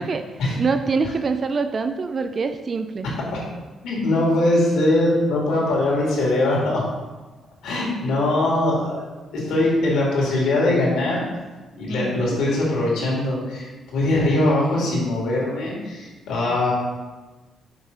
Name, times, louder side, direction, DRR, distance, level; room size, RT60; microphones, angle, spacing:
voice 1, 0.6-3.1 11.9-12.4, right 4 dB, 40° right, 7 dB, 0.4 m, -25 dB
voice 2, 3.8-6.9 7.6-8.9 9.3-11.2 11.8-16.7, left 1 dB, 80° left, -4 dB, 2.1 m, -21 dB
6.0 x 3.3 x 5.5 m, 1.2 s
cardioid pair, 90°, 0 cm